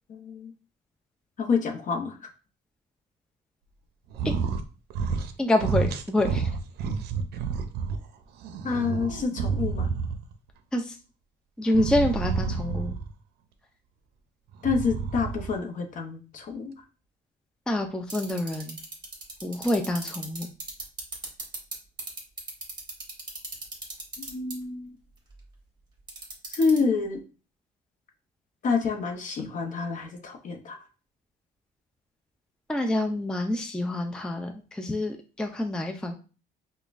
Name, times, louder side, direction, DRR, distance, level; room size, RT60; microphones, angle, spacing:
voice 1, 0.1-0.5 1.4-2.2 8.6-9.9 14.6-16.7 24.2-25.0 26.5-27.2 28.6-30.8, left 5 dB, 50° left, 4 dB, 0.8 m, -28 dB
sound 1, 4.1-4.6 4.9-5.3 5.6-8.0 8.4-10.3 11.7-13.1 14.5-15.6, right 5 dB, 75° right, 0.5 m, -29 dB
voice 2, 5.4-6.5 10.7-11.0 11.6-12.9 17.7-18.8 19.4-20.5 32.7-36.1, left 1 dB, 5° left, 4 dB, 0.4 m, -27 dB
sound 2, 18.1-21.7 22.0-24.5 26.1-26.8, right 4 dB, 25° right, 1.5 m, -35 dB
5.0 x 2.3 x 2.5 m, 0.35 s
cardioid pair, 110°, 17 cm